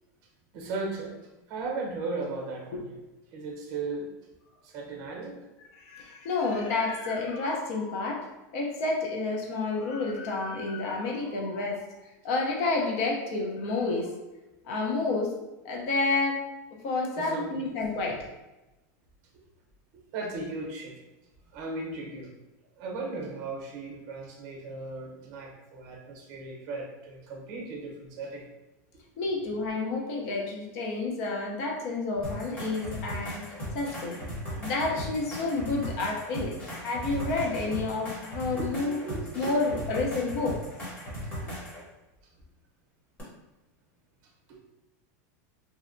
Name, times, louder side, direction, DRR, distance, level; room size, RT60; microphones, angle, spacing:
voice 1, 0.5-1.2 1.5-3.0 3.3-4.1 4.6-5.3 17.2-17.7 20.1-20.9 21.5-22.3 22.8-28.4 38.5-39.5 41.4-41.6, right 3 dB, 45° right, 0 dB, 0.7 m, -36 dB
voice 2, 5.7-8.2 8.5-11.9 12.2-14.1 14.7-15.3 15.6-16.4 16.8-18.3 29.2-33.4 33.7-34.2 34.6-39.0 39.3-40.6, left 3 dB, 55° left, 0 dB, 0.5 m, -30 dB
sound 1, 32.2-41.8 43.2-43.3, equal, 20° left, 0.8 m, -37 dB
2.7 x 2.1 x 2.5 m, 1.0 s
supercardioid pair, 160°, 9 cm